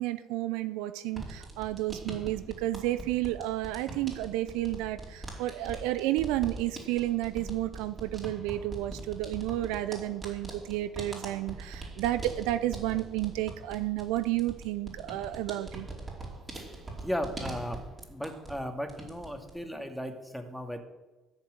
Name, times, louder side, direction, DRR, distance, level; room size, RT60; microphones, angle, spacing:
voice 1, 0.0-15.9, right 15 dB, 70° right, 13 dB, 0.5 m, -31 dB
sound 1, 1.1-18.6 18.9-19.6, right 2 dB, 30° right, 4.7 m, -42 dB
voice 2, 17.0-17.8 18.1-20.8, equal, ahead, 5 dB, 2.4 m, -36 dB
13.5 x 7.3 x 7.8 m, 1.2 s
hypercardioid pair, 50°, 0 cm